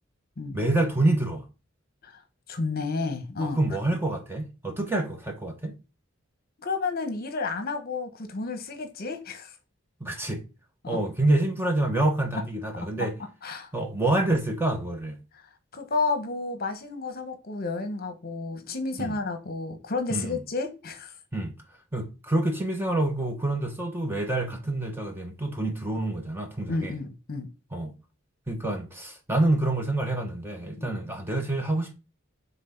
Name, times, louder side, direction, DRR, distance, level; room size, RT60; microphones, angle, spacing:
voice 1, 0.5-1.5 3.4-5.7 10.0-10.4 10.9-13.1 13.7-15.2 19.0-19.1 20.1-20.4 21.3-21.5 21.9-26.9 27.7-27.9 28.5-31.9, right 2 dB, 10° right, 1.0 m, -27 dB
voice 2, 2.5-3.6 6.6-9.5 10.8-11.0 12.8-12.9 13.4-13.7 15.4-21.1 26.7-27.5 30.8-30.9, left 3 dB, 50° left, 1.1 m, -31 dB
6.0 x 3.7 x 5.8 m
head